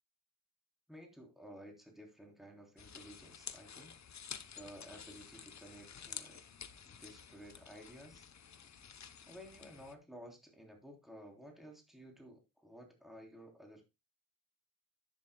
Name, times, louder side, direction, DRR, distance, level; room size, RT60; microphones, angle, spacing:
voice 1, 0.9-3.9 4.5-6.4 6.9-8.3 9.3-13.9, equal, ahead, 1 dB, 3.5 m, -54 dB
sound 1, 2.8-9.9, left 7 dB, 50° left, 0.9 m, -51 dB
11.0 x 10.5 x 2.3 m, 0.23 s
wide cardioid pair, 120°, 34 cm